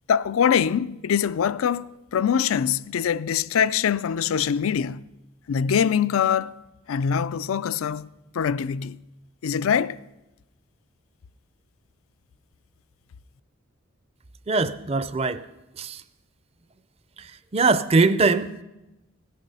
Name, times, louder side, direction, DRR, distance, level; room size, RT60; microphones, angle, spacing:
voice 1, 0.1-5.0 5.5-6.5 6.9-8.1 8.3-9.0 9.4-10.0, left 7 dB, 85° left, 0.4 m, -23 dB
voice 2, 14.5-15.4 15.8-16.0 17.5-18.6, right 3 dB, 30° right, 0.5 m, -21 dB
17.0 x 10.0 x 5.5 m
head